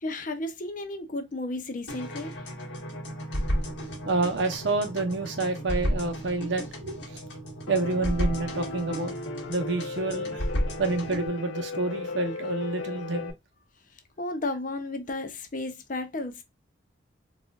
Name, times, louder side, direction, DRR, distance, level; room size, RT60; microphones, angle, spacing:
voice 1, 0.0-2.3 14.2-16.4, left 2 dB, 40° left, 0.6 m, -33 dB
sound 1, 1.9-11.3, equal, 60° left, 1.4 m, -33 dB
voice 2, 4.1-7.2 7.7-9.1 9.5-10.5 10.8-13.3, right 3 dB, 70° right, 0.8 m, -28 dB
Piano, 7.7-13.3, left 2 dB, 75° left, 0.7 m, -36 dB
4.1 x 2.5 x 2.3 m
head